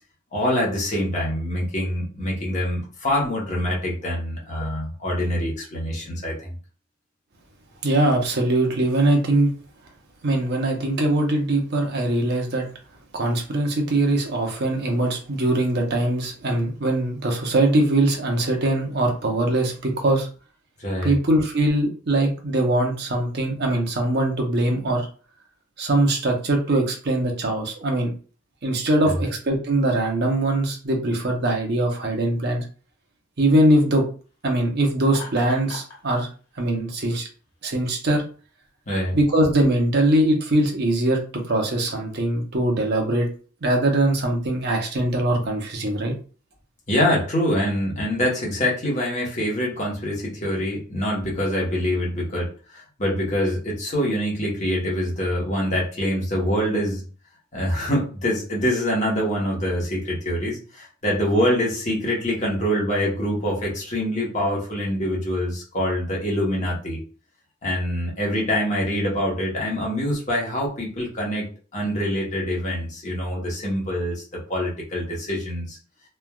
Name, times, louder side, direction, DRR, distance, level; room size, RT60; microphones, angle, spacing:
voice 1, 0.3-6.6 20.8-21.2 29.0-29.2 38.9-39.2 46.9-57.0 57.5-67.0 67.6-75.8, equal, 35° left, -3 dB, 1.0 m, -25 dB
voice 2, 7.8-9.5 10.2-12.7 13.1-20.3 21.0-25.1 25.8-28.1 28.6-32.7 33.4-34.0 34.4-36.3 36.6-37.3 37.6-38.2 39.1-43.3 43.6-46.1, right 1 dB, 50° right, 2 dB, 0.7 m, -22 dB
Laughter, 35.1-36.0, left 4 dB, 85° left, 1.3 m, -38 dB
3.2 x 2.3 x 2.3 m, 0.38 s
head